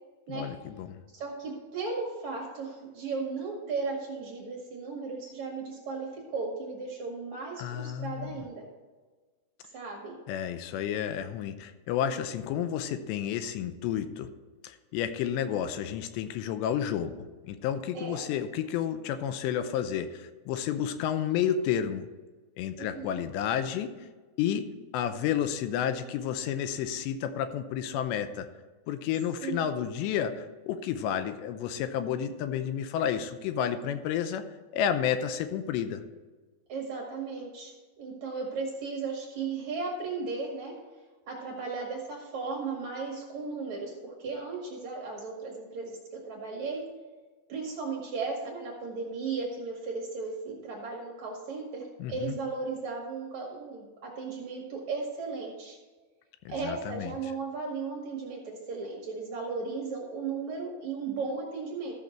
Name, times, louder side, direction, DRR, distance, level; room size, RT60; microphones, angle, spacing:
voice 1, 0.3-1.0 7.6-8.4 10.3-14.3 14.6-22.1 22.6-23.9 24.4-24.7 24.9-28.5 28.9-34.4 34.7-36.0 52.0-52.4 56.5-57.1, left 9 dB, 90° left, 10 dB, 2.9 m, -31 dB
voice 2, 1.1-8.6 9.7-10.2 17.9-18.2 22.8-23.2 29.4-29.8 36.7-40.7 41.3-46.8 47.5-55.8 56.5-61.9, right 4 dB, 55° right, -1 dB, 2.3 m, -36 dB
14.0 x 6.5 x 4.4 m, 1.3 s
omnidirectional pair, 5.0 m